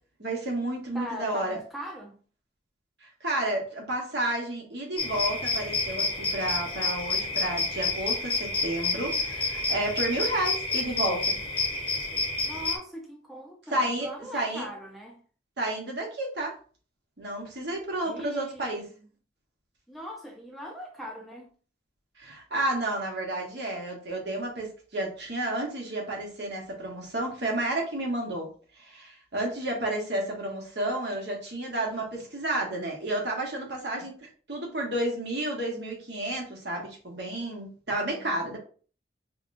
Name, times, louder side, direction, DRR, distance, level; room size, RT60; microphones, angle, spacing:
voice 1, 0.2-1.6 3.0-11.3 13.7-14.7 15.6-16.5 17.2-18.8 22.2-28.5 28.8-38.6, right 1 dB, 70° right, 1.2 m, -31 dB
voice 2, 0.9-2.1 12.5-15.2 18.0-19.1 19.9-21.5 38.1-38.5, equal, ahead, 0.6 m, -41 dB
sound 1, 5.0-12.8, left 3 dB, 30° left, 0.8 m, -29 dB
5.1 x 2.2 x 2.6 m
head